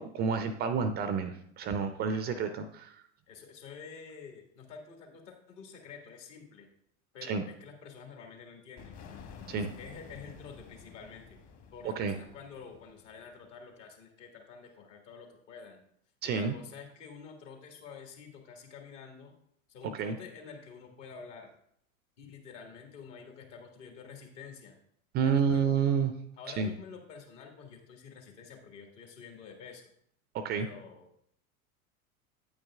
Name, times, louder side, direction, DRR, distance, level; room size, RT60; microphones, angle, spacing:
voice 1, 0.0-2.9 7.2-7.4 9.5-9.7 12.0-12.1 16.2-16.5 19.9-20.2 25.1-26.1 26.6-26.7 30.3-30.7, right 6 dB, 25° right, 9 dB, 0.4 m, -29 dB
voice 2, 2.0-2.5 3.3-6.7 7.1-9.0 9.8-11.4 11.7-15.8 16.2-19.3 19.7-21.5 22.2-24.7 25.2-25.6 26.4-29.8 30.5-31.2, left 6 dB, 60° left, 2 dB, 1.8 m, -48 dB
sound 1, 8.8-13.4, left 6 dB, 40° left, 1.5 m, -51 dB
8.8 x 8.8 x 2.3 m, 0.69 s
figure-of-eight pair, 85°, 41 cm